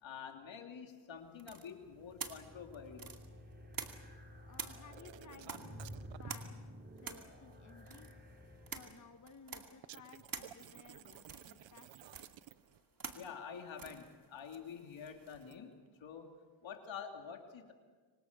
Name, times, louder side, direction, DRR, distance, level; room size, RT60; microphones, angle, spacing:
voice 1, 0.0-3.1 13.1-15.7 16.0-16.4 16.6-17.7, left 7 dB, 80° left, 4 dB, 3.0 m, -48 dB
sound 1, 1.4-4.2 4.5-15.5, right 5 dB, 50° right, 2.5 m, -49 dB
sound 2, 1.8-9.2, equal, 20° right, 3.8 m, -52 dB
voice 2, 4.5-6.5 7.0-8.1 8.7-12.3, left 5 dB, 40° left, 8 dB, 1.2 m, -58 dB
sound 3, 4.9-6.3 9.8-12.8 15.3-15.6, right 12 dB, 80° right, 0.7 m, -54 dB
25.5 x 25.5 x 6.7 m, 1.4 s
cardioid pair, 80°, 45 cm